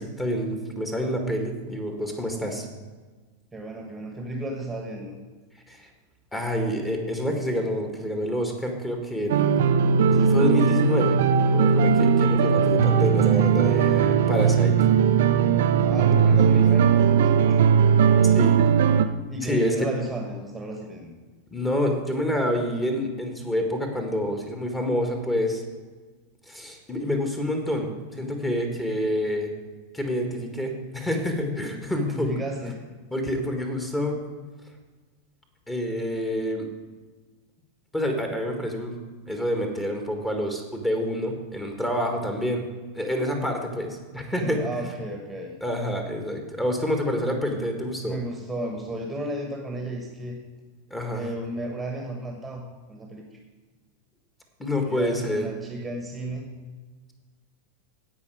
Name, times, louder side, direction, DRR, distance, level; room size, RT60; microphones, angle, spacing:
voice 1, 0.0-2.6 5.7-5.9 6.3-9.4 10.1-11.2 11.5-14.7 16.3-16.6 18.2-18.6 19.4-19.8 21.5-25.6 26.5-29.5 29.9-32.3 33.1-34.2 35.7-36.7 37.9-38.9 39.3-42.6 42.9-44.7 45.6-48.2 50.9-51.3 54.6-55.5, equal, 10° left, 3 dB, 1.8 m, -27 dB
voice 2, 3.5-5.2 15.8-17.7 19.3-21.1 32.1-32.8 44.4-45.5 48.1-50.4 51.1-53.3 54.9-56.5, right 1 dB, 10° right, 1 dB, 1.5 m, -33 dB
sound 1, 9.3-19.1, right 6 dB, 55° right, 0.6 m, -19 dB
16.5 x 5.5 x 4.9 m, 1.4 s
figure-of-eight pair, 90°, 0 cm